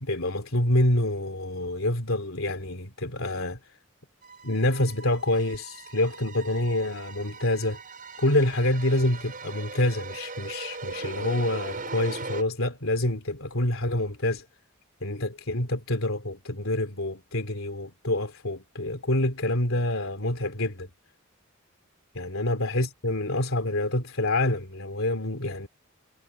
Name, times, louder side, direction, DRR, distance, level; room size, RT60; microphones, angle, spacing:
voice 1, 0.0-3.6 4.4-7.8 8.2-14.4 15.0-20.9 22.1-25.7, left 1 dB, 75° left, 3.2 m, -27 dB
sound 1, 4.2-12.4, right 3 dB, 45° right, 5.9 m, -39 dB
head